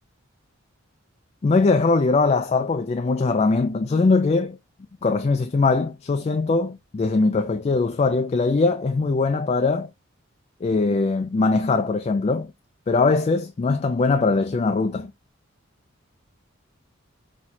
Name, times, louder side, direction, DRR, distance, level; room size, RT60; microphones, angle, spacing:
voice 1, 1.4-4.6 5.0-9.9 10.6-12.5 12.9-15.1, left 3 dB, 30° left, 0.3 m, -21 dB
5.5 x 3.0 x 2.7 m
head